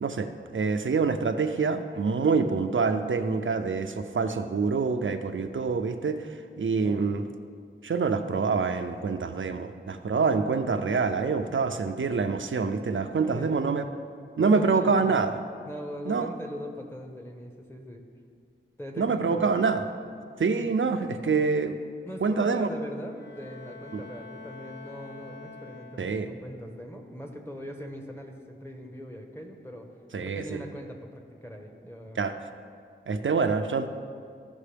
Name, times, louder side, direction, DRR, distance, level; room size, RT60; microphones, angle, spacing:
voice 1, 0.0-7.2 7.8-13.8 14.4-15.3 16.1-16.3 19.0-19.9 20.4-21.8 22.2-22.7 23.9-24.0 26.0-26.3 30.1-30.6 32.2-32.3 33.1-33.9, right 4 dB, 75° right, 7 dB, 0.5 m, -26 dB
voice 2, 6.8-7.1 13.2-13.7 14.4-15.2 15.7-18.0 18.8-19.4 22.0-29.9 30.2-32.2, equal, 10° left, 3 dB, 1.1 m, -41 dB
Bowed string instrument, 23.1-26.5, left 4 dB, 55° left, 1.2 m, -46 dB
14.5 x 5.3 x 3.4 m, 2.2 s
wide cardioid pair, 45°, 21 cm